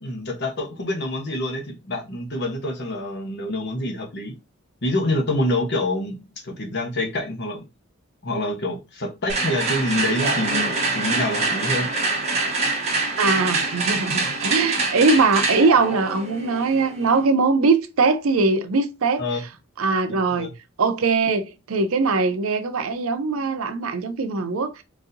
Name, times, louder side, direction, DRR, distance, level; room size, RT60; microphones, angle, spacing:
voice 1, 0.0-4.4 4.8-7.6 8.2-11.9 19.2-19.4 20.4-20.5, left 1 dB, 55° left, 0.9 m, -26 dB
sound 1, 9.3-17.3, right 3 dB, 30° right, 1.0 m, -25 dB
voice 2, 13.2-19.2 19.8-20.5 20.8-24.8, right 4 dB, 80° right, 0.6 m, -21 dB
4.0 x 2.7 x 2.6 m
head